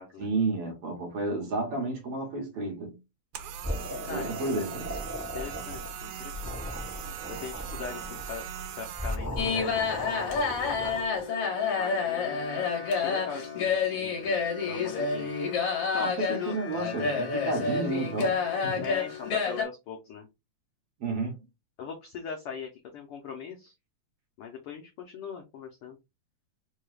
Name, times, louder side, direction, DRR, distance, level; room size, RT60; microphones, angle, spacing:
voice 1, 0.2-3.0 4.1-4.9 16.0-18.9 21.0-21.4, right 3 dB, 60° right, 1.8 m, -31 dB
sound 1, 3.3-9.2, right 8 dB, 80° right, 1.9 m, -40 dB
sound 2, 3.6-5.9 6.2-8.4 8.9-11.2, left 1 dB, 10° right, 0.8 m, -37 dB
voice 2, 4.0-4.5 5.2-6.7 7.3-8.4 8.7-11.1 11.8-15.3 15.9-16.6 18.8-20.3 21.8-23.7 24.4-26.0, left 6 dB, 75° left, 1.3 m, -41 dB
sound 3, 9.4-19.6, left 5 dB, 60° left, 1.9 m, -29 dB
4.6 x 2.3 x 3.2 m
omnidirectional pair, 3.3 m